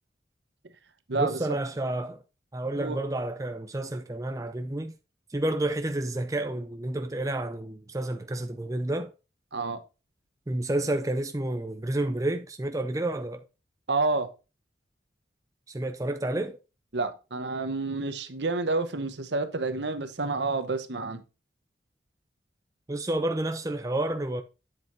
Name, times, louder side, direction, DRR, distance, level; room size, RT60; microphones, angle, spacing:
voice 1, 1.2-2.2 2.5-4.9 5.3-9.1 10.5-13.4 15.7-16.6 22.9-24.4, right 1 dB, 20° right, 0.5 m, -30 dB
voice 2, 13.9-14.3 16.9-21.2, right 3 dB, 70° right, 1.0 m, -29 dB
7.8 x 7.6 x 2.6 m
head